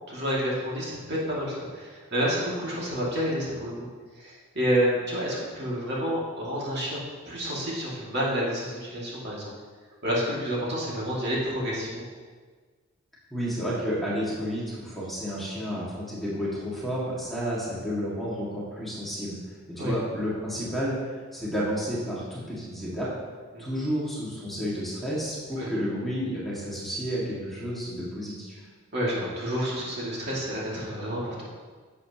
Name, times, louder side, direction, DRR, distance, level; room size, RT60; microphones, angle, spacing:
voice 1, 0.1-3.9 4.1-9.5 10.0-12.0 19.8-19.9 23.5-23.7 25.6-25.7 28.9-31.5, equal, 50° right, -5 dB, 2.2 m, -29 dB
voice 2, 13.3-19.4 19.7-23.1 23.6-28.6, equal, ahead, -8 dB, 1.8 m, -31 dB
10.5 x 7.4 x 2.9 m, 1.5 s
head